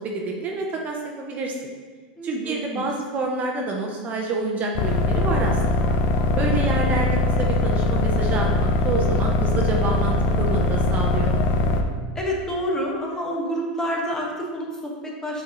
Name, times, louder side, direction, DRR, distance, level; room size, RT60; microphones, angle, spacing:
voice 1, 0.0-1.7 2.2-6.0 6.4-7.1 7.4-11.3, right 3 dB, 30° right, 0 dB, 0.7 m, -28 dB
voice 2, 2.2-2.8 6.4-6.6 12.1-15.4, equal, 10° left, -2 dB, 1.1 m, -28 dB
sound 1, 4.8-11.8, left 2 dB, 45° left, 0.6 m, -21 dB
5.7 x 4.4 x 3.7 m, 1.4 s
supercardioid pair, 125°, 5 cm